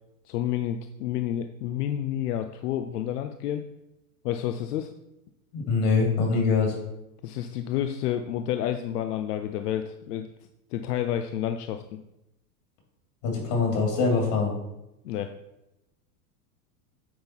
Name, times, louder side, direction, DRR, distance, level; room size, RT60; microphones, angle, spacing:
voice 1, 0.2-3.6 4.2-4.9 7.2-10.3 10.7-12.0 15.0-15.3, left 11 dB, 80° left, 8 dB, 0.7 m, -30 dB
voice 2, 5.5-6.8 13.2-14.5, left 4 dB, 60° left, 1 dB, 2.9 m, -23 dB
9.3 x 3.9 x 4.5 m, 0.89 s
hypercardioid pair, 115°, 46 cm